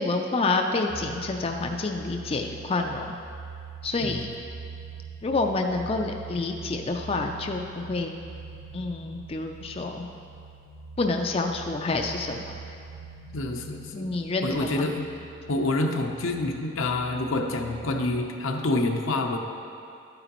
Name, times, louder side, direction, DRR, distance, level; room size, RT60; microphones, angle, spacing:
voice 1, 0.0-3.2 3.8-4.3 5.2-8.1 8.7-10.1 11.0-12.6 13.9-14.9, left 3 dB, 30° left, 3 dB, 0.4 m, -28 dB
sound 1, 0.9-18.2, right 4 dB, 55° right, 0.7 m, -43 dB
voice 2, 13.3-14.1 14.4-15.1 15.5-19.4, left 2 dB, 90° left, 3 dB, 0.8 m, -27 dB
12.0 x 8.9 x 3.0 m, 2.5 s
head